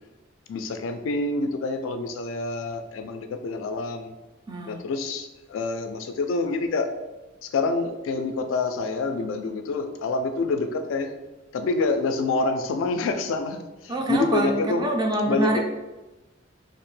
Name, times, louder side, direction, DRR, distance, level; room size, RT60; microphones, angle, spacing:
voice 1, 0.5-4.1 4.7-6.9 7.4-11.1 11.5-14.9 15.3-15.6, left 3 dB, 90° left, 7 dB, 0.3 m, -27 dB
voice 2, 4.5-4.8 13.9-15.6, right 1 dB, 20° right, 2 dB, 0.3 m, -25 dB
2.5 x 2.1 x 3.1 m, 1.1 s
head